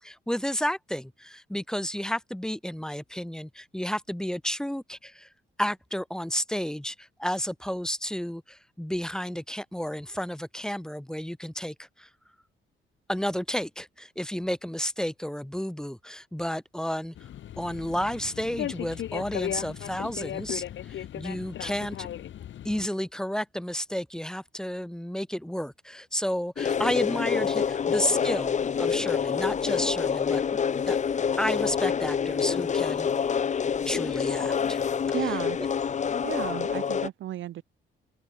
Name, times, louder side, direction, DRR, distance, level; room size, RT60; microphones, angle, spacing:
voice 1, 0.0-5.3 5.6-12.1 13.1-17.2 17.6-22.1 22.6-30.6 30.9-31.0 31.4-33.1 33.8-34.8 35.2-35.4, equal, 5° left, 1.9 m, -32 dB
sound 1, 17.2-22.9, left 11 dB, 70° left, 5.6 m, -36 dB
sound 2, 26.6-37.1, left 7 dB, 35° left, 0.8 m, -27 dB
voice 2, 35.1-35.6 36.2-37.6, right 13 dB, 75° right, 1.3 m, -34 dB
open air
cardioid pair, 90°, 20 cm